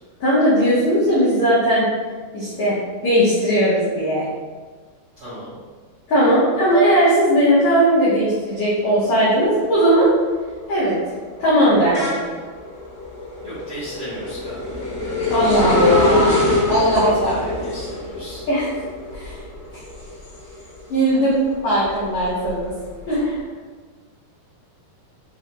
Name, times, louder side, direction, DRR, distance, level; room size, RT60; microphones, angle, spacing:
voice 1, 0.2-1.9 2.3-2.8 3.0-4.3 6.1-10.1 10.7-11.0 11.4-12.2 15.3-17.3 18.5-18.7 19.1-19.4 20.9-21.3 21.6-22.7 23.0-23.3, equal, 85° left, -10 dB, 1.5 m, -18 dB
voice 2, 5.2-5.5 13.4-14.8 16.8-18.5, right 1 dB, 60° right, -11 dB, 1.3 m, -35 dB
sound 1, 9.0-9.4 9.8-21.1 21.5-23.2, left 1 dB, 60° left, 1.3 m, -25 dB
6.2 x 2.1 x 3.0 m, 1.5 s
omnidirectional pair, 4.6 m